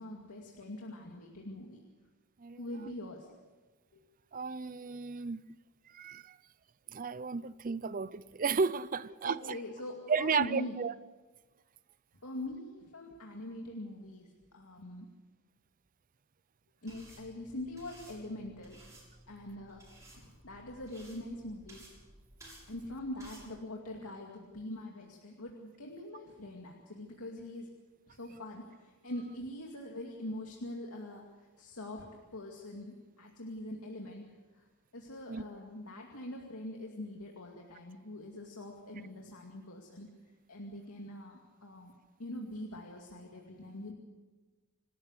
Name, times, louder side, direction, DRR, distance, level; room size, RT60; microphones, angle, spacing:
voice 1, 0.0-1.8 2.6-3.3 3.9-4.0 9.2-10.8 12.2-15.1 16.8-18.8 19.3-19.8 20.1-21.9 22.7-27.7 28.1-32.0 32.3-34.2 34.5-41.9 42.2-43.9, left 1 dB, 85° left, 2.4 m, -43 dB
voice 2, 4.3-5.4 5.9-6.4 6.9-9.6 10.1-10.9 35.3-35.4, right 5 dB, 40° right, 0.5 m, -33 dB
sound 1, 16.9-23.5, right 1 dB, 15° right, 7.3 m, -56 dB
27.0 x 13.0 x 8.2 m
head